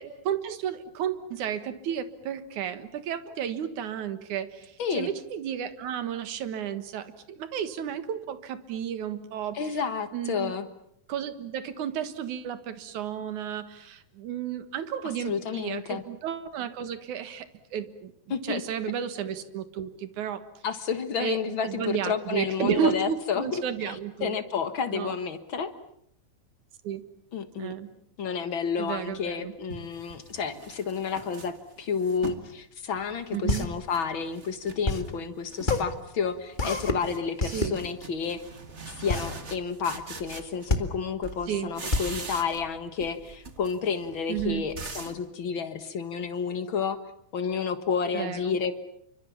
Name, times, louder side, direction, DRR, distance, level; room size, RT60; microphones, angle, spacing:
voice 1, 0.0-9.6 10.1-10.5 11.1-18.1 18.4-20.4 21.2-24.4 24.9-25.1 26.8-27.0 27.6-27.9 28.8-29.5 33.3-33.7 37.4-37.8 41.5-41.7 44.3-44.7 48.1-48.5, right 9 dB, 60° right, 11 dB, 2.7 m, -32 dB
voice 2, 9.5-10.7 15.2-16.0 18.3-18.6 20.6-25.7 27.3-27.7 28.2-38.4 38.9-47.0 47.3-48.7, left 6 dB, 55° left, 10 dB, 1.4 m, -30 dB
sound 1, 29.0-29.1 29.7-32.5 32.9-34.0 34.3-35.2 35.5-35.9 36.2-41.0 41.2-42.7 43.0-45.2, right 4 dB, 40° right, 1.0 m, -42 dB
sound 2, 33.0-43.3, left 2 dB, 30° left, 0.8 m, -30 dB
29.0 x 25.0 x 7.2 m, 0.70 s
omnidirectional pair, 4.3 m